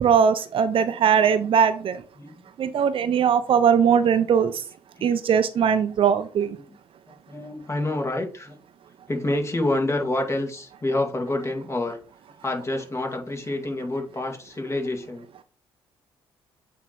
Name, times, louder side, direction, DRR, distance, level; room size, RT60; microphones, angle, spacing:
voice 1, 0.0-2.0 2.6-4.5 5.0-6.6, right 7 dB, 55° right, 12 dB, 0.6 m, -20 dB
voice 2, 2.2-2.5 5.0-5.1 6.6-6.8 7.3-8.6 9.1-12.0 12.4-15.2, left 2 dB, 25° left, 3 dB, 2.1 m, -28 dB
8.1 x 3.1 x 4.2 m, 0.38 s
supercardioid pair, 55°, 11 cm